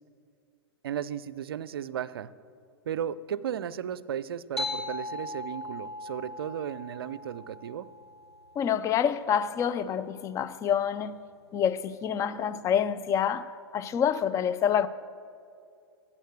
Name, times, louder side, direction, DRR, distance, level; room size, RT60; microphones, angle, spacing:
voice 1, 0.8-2.3 2.9-7.9, right 9 dB, 65° right, 0.4 m, -35 dB
sound 1, 4.6-9.5, left 2 dB, 85° left, 1.0 m, -39 dB
voice 2, 8.6-11.2 11.5-14.9, left 8 dB, 25° left, 0.4 m, -27 dB
13.0 x 8.7 x 6.4 m
figure-of-eight pair, 100°, 13 cm